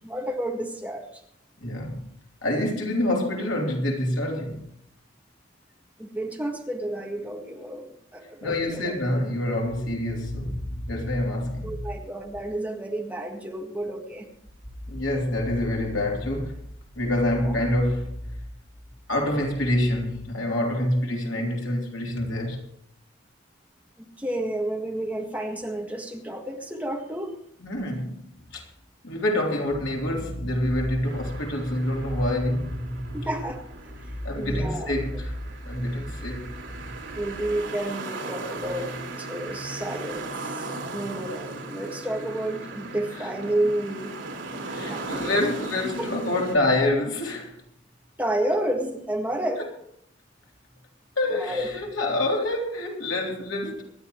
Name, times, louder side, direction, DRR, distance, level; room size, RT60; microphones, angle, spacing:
voice 1, 0.0-1.2 6.0-8.9 11.6-14.3 17.4-17.5 24.0-27.4 33.1-33.6 34.0-34.9 37.1-38.9 39.2-40.6 40.9-44.1 44.9-45.4 46.0-46.4 48.2-49.6 51.3-51.6, right 1 dB, 10° right, 1.8 m, -31 dB
voice 2, 1.6-2.0 2.4-4.7 8.4-11.9 14.9-16.6 16.9-18.4 19.1-22.6 27.6-28.7 29.0-33.3 34.2-36.9 44.6-47.6 51.2-53.8, left 1 dB, 85° left, 3.6 m, -27 dB
sound 1, 31.0-46.6, right 3 dB, 75° right, 3.5 m, -38 dB
25.5 x 11.0 x 3.2 m
head